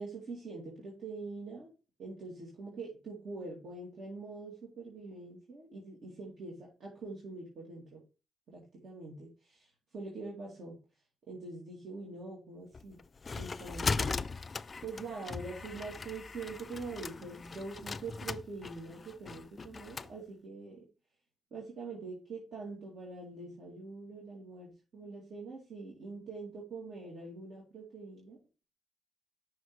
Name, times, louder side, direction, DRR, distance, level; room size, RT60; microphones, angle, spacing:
voice 1, 0.0-1.7 2.0-8.0 8.5-9.3 9.6-9.7 9.9-10.8 11.3-13.0 13.3-14.2 14.8-20.8 21.5-28.4, right 3 dB, 60° right, -4 dB, 2.4 m, -44 dB
sound 1, 12.7-20.1, left 4 dB, 35° left, 0.3 m, -38 dB
6.2 x 3.8 x 4.7 m, 0.31 s
cardioid pair, 90°, 0 cm